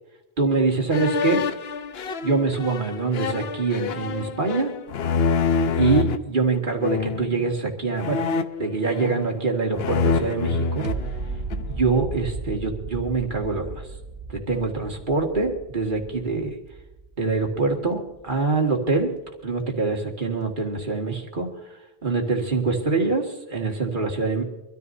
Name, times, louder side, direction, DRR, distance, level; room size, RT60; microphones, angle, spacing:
voice 1, 0.4-1.4 2.2-4.7 5.7-8.2 8.6-10.9 11.7-13.9 14.3-16.5 17.2-19.1 19.4-21.5 22.0-24.4, right 4 dB, 50° right, 1 dB, 2.2 m, -24 dB
sound 1, 0.9-6.2 6.8-7.3 8.0-9.4 9.7-11.7, left 5 dB, 70° left, 1.0 m, -26 dB
sound 2, 10.8-17.9 18.3-18.4, right 4 dB, 65° right, 1.2 m, -35 dB
24.5 x 14.0 x 2.7 m, 1.0 s
omnidirectional pair, 1.1 m